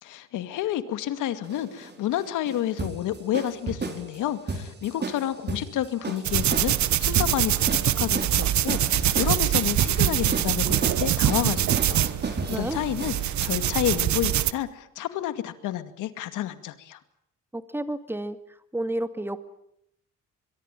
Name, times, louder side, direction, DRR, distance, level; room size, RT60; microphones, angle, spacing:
voice 1, 0.0-7.6 8.0-17.0, left 12 dB, 90° left, 11 dB, 2.3 m, -30 dB
sound 1, 1.4-13.5, right 3 dB, 35° right, 4.7 m, -34 dB
sound 2, 6.2-14.5, right 12 dB, 70° right, 1.2 m, -24 dB
voice 2, 12.5-12.8 17.5-18.4 18.7-19.4, right 1 dB, 5° right, 10 dB, 2.2 m, -30 dB
23.5 x 23.5 x 9.1 m, 0.73 s
cardioid pair, 90°, 30 cm